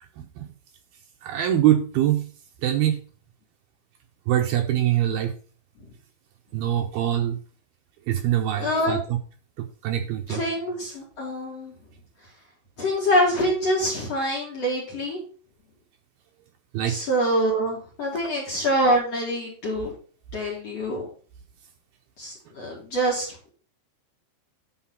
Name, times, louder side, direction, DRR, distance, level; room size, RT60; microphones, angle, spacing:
voice 1, 1.2-2.3 2.6-3.0 4.3-5.3 6.5-7.4 8.1-9.2 9.6-10.4 16.7-17.0, right 12 dB, 80° right, 2.2 m, -23 dB
voice 2, 8.5-9.0 10.3-11.7 12.8-15.2 16.8-19.9 20.3-21.1 22.2-23.4, equal, 40° left, 3.0 m, -25 dB
10.0 x 4.6 x 5.5 m
omnidirectional pair, 5.4 m